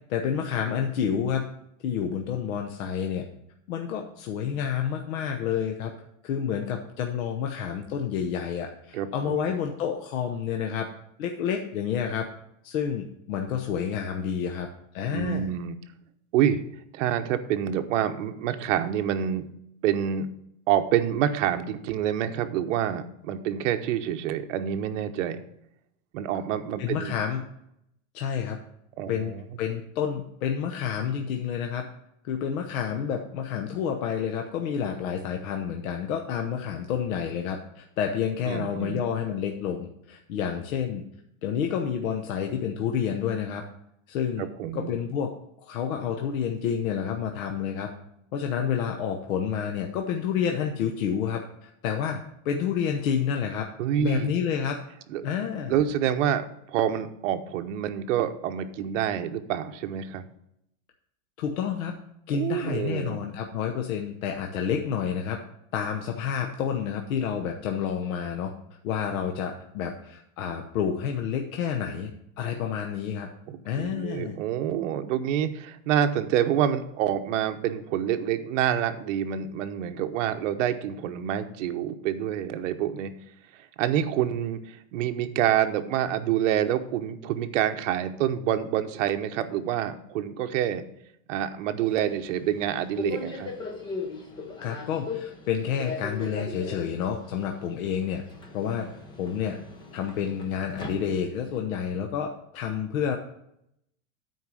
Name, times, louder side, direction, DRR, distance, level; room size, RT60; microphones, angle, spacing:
voice 1, 0.1-1.5 1.8-3.2 3.7-5.9 6.2-10.9 11.2-12.3 12.6-14.7 14.9-15.5 26.8-27.4 28.1-28.6 29.1-29.3 29.6-31.8 32.2-41.0 41.4-43.6 44.1-44.5 44.7-45.3 45.6-47.9 48.3-53.7 54.0-54.8 55.2-55.8 61.4-61.9 62.3-65.4 65.7-68.5 68.8-72.1 72.4-73.3 73.6-74.4 94.6-98.2 98.5-98.9 99.2-99.6 99.9-103.2, left 8 dB, 75° left, 4 dB, 1.0 m, -29 dB
voice 2, 8.9-9.4 15.1-15.8 16.3-16.6 16.9-19.5 19.8-20.3 20.7-25.4 26.1-27.1 29.0-29.4 38.5-39.0 44.4-44.9 53.8-54.3 55.1-55.3 55.7-60.2 62.3-63.2 73.5-83.1 83.5-90.8 91.3-93.5, right 10 dB, 65° right, 7 dB, 0.9 m, -27 dB
Subway metro underground, 91.8-101.6, left 4 dB, 10° left, 0.6 m, -39 dB
9.4 x 4.6 x 6.2 m, 0.77 s
supercardioid pair, 170°, 41 cm